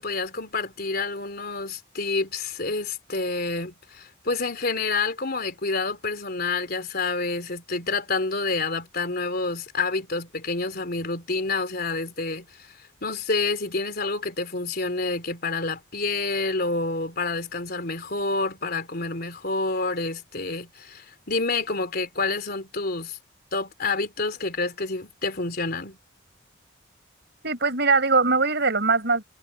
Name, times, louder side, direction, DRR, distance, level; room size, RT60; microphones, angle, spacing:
voice 1, 0.0-12.7 13.0-23.2 23.5-26.0, left 3 dB, 50° left, 3.5 m, -28 dB
voice 2, 27.4-29.2, right 4 dB, 60° right, 5.8 m, -21 dB
head